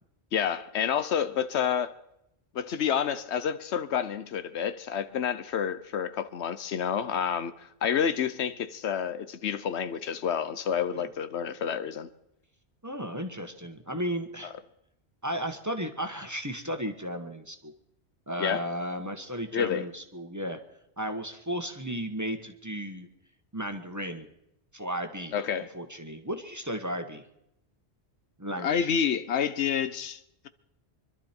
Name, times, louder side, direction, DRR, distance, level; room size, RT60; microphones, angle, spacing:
voice 1, 0.3-1.9 2.5-12.1 18.4-18.6 19.5-19.9 25.3-25.7 28.6-30.2, left 8 dB, 80° left, 1.1 m, -29 dB
voice 2, 12.8-14.5 15.2-17.7 18.3-20.6 21.0-23.1 23.5-24.3 24.7-25.4 25.7-27.3 28.4-28.9, equal, 15° right, 1.2 m, -34 dB
25.0 x 12.0 x 4.4 m
omnidirectional pair, 1.1 m